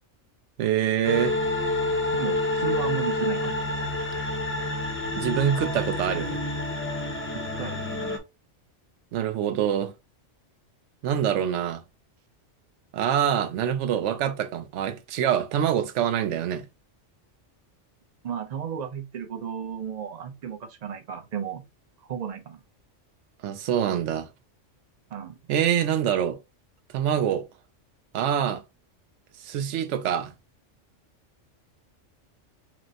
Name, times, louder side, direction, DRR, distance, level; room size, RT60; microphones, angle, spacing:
voice 1, 0.6-1.4 5.1-6.4 9.1-9.9 11.0-11.8 12.9-16.6 23.4-24.3 25.5-26.4 26.9-27.5 28.1-28.6 29.4-30.3, right 9 dB, 75° right, 0.9 m, -25 dB
sound 1, 1.0-8.2, left 2 dB, 15° left, 0.5 m, -28 dB
voice 2, 2.1-3.6 7.3-7.8 18.2-21.6 22.1-22.6 25.1-25.4, right 8 dB, 50° right, 0.5 m, -34 dB
5.9 x 2.1 x 2.7 m
omnidirectional pair, 1.3 m